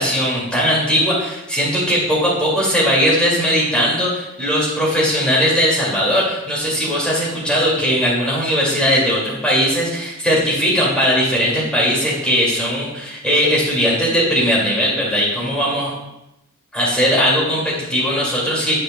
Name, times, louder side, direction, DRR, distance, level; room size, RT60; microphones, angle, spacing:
voice 1, 0.0-15.9 16.7-18.7, equal, 5° left, -6 dB, 2.2 m, -18 dB
9.4 x 6.6 x 2.2 m, 0.88 s
head